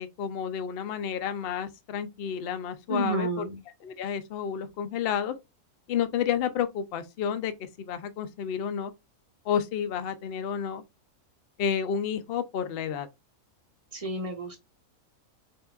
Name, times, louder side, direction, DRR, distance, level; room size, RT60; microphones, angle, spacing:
voice 1, 0.0-3.3 3.8-5.4 5.9-8.9 9.4-10.8 11.6-13.1, left 8 dB, 65° left, 0.6 m, -30 dB
voice 2, 2.9-3.6 13.9-14.6, right 2 dB, 30° right, 0.8 m, -30 dB
5.5 x 2.7 x 2.4 m
omnidirectional pair, 1.6 m